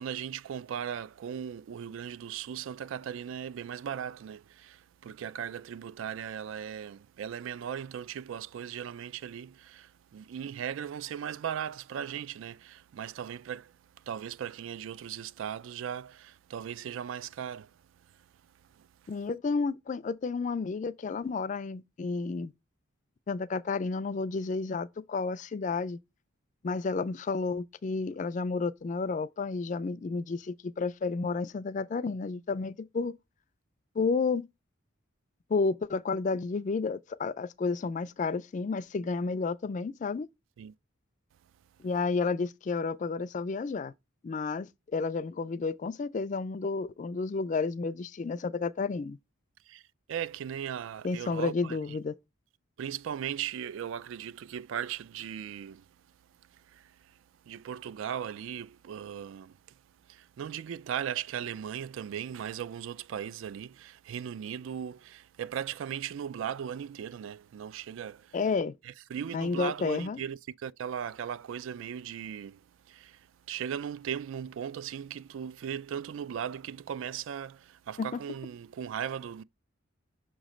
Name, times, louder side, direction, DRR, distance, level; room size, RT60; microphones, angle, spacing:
voice 1, 0.0-17.7 18.0-18.2 18.7-18.9 40.6-40.7 49.7-49.8 50.1-52.0 52.8-55.9 56.5-68.4 68.8-79.4, right 8 dB, 70° right, 0.3 m, -38 dB
voice 2, 19.1-22.5 23.3-26.0 26.6-33.2 34.0-34.5 35.5-40.3 41.8-43.9 44.2-49.2 51.0-52.1 68.3-68.7 69.3-70.2 78.0-78.1, left 4 dB, 35° left, 0.3 m, -31 dB
6.3 x 3.1 x 4.9 m
head